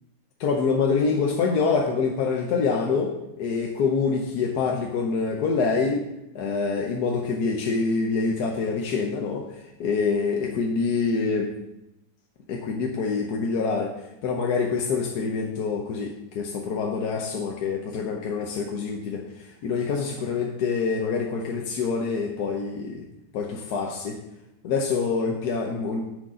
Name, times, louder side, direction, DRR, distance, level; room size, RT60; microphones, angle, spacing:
voice 1, 0.4-6.1 6.3-9.5 9.8-11.5 12.5-13.9 14.2-23.0 23.3-24.2 24.6-26.0, left 5 dB, 65° left, 0 dB, 1.3 m, -26 dB
9.7 x 6.7 x 3.8 m, 0.88 s
omnidirectional pair, 2.0 m